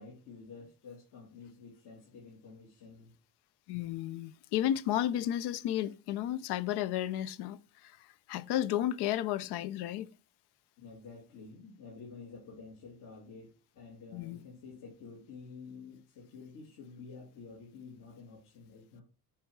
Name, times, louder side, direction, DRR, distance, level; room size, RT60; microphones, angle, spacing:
voice 1, 0.0-3.1 10.8-19.0, left 4 dB, 55° left, 2.5 m, -50 dB
voice 2, 3.7-8.0 8.3-10.1 14.1-14.4, left 12 dB, 80° left, 0.7 m, -33 dB
8.3 x 4.9 x 4.7 m
cardioid pair, 175°, 39 cm